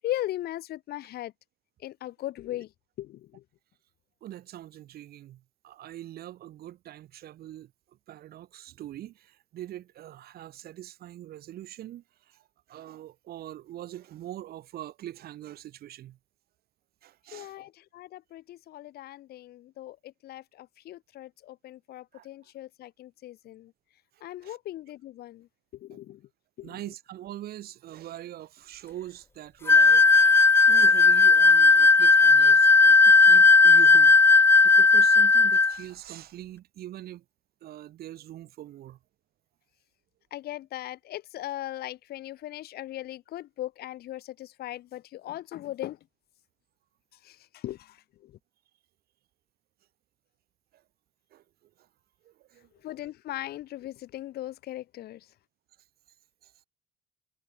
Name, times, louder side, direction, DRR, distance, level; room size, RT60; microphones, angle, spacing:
voice 1, 0.0-1.3 1.8-2.7 3.0-3.4 17.3-23.7 24.2-25.5 25.7-26.2 26.6-26.8 40.3-46.0 47.2-48.0 48.2-48.3 52.8-55.2, left 14 dB, 70° left, 1.5 m, -38 dB
voice 2, 4.2-7.7 8.1-16.2 17.0-17.6 22.1-22.3 24.1-24.6 25.9-26.0 26.6-30.1 30.7-37.2 37.6-39.0 51.3-51.4 51.8-51.9 52.2-52.7 56.4-56.5, right 13 dB, 65° right, 2.9 m, -43 dB
sound 1, 29.7-35.8, left 4 dB, 15° left, 0.4 m, -16 dB
cardioid pair, 110°, 17 cm